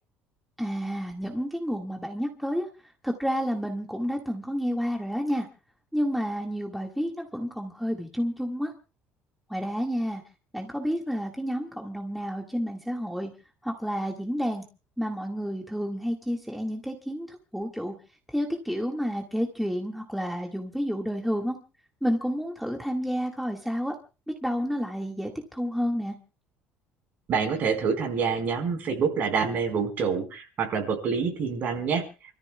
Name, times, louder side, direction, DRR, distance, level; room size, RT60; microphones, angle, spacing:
voice 1, 0.6-2.7 3.0-5.5 5.9-8.7 9.5-10.2 10.5-13.3 13.6-14.6 15.0-17.9 18.3-21.6 22.0-23.9 24.4-26.2, equal, ahead, 1 dB, 1.8 m, -30 dB
voice 2, 27.3-32.0, right 6 dB, 45° right, 4 dB, 4.4 m, -27 dB
29.5 x 14.0 x 2.3 m, 0.34 s
cardioid pair, 155°, 4 cm